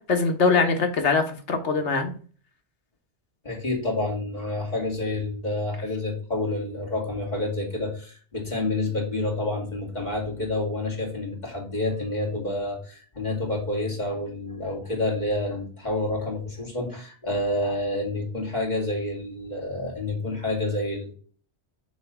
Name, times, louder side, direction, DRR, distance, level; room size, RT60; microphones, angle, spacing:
voice 1, 0.1-2.1, left 4 dB, 90° left, 6 dB, 1.5 m, -22 dB
voice 2, 3.4-21.2, left 2 dB, 40° left, -2 dB, 2.7 m, -28 dB
6.8 x 3.2 x 5.4 m, 0.40 s
omnidirectional pair, 1.1 m